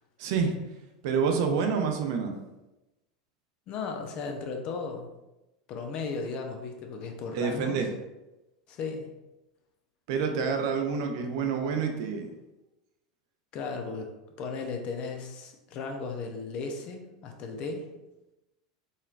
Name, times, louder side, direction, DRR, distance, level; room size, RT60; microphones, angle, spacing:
voice 1, 0.2-0.6 1.0-2.4 7.3-7.9 10.1-12.3, right 5 dB, 60° right, 5 dB, 0.5 m, -28 dB
voice 2, 3.7-5.1 5.7-7.9 8.7-9.1 13.5-14.1 14.4-17.9, left 4 dB, 45° left, 3 dB, 0.6 m, -35 dB
4.0 x 3.1 x 2.4 m, 1.0 s
figure-of-eight pair, 85°, 2 cm